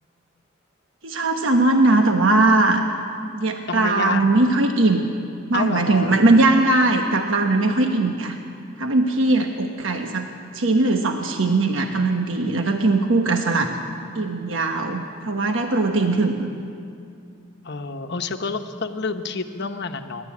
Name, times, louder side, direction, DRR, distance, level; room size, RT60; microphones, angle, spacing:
voice 1, 1.0-2.8 3.3-5.0 5.5-8.4 8.8-10.3 10.5-13.7 14.1-16.5, right 2 dB, 70° right, 4 dB, 1.3 m, -20 dB
voice 2, 3.7-4.3 5.5-6.2 10.0-10.1 17.6-20.3, left 4 dB, 55° left, 6 dB, 1.1 m, -28 dB
27.5 x 12.5 x 8.6 m, 2.5 s
head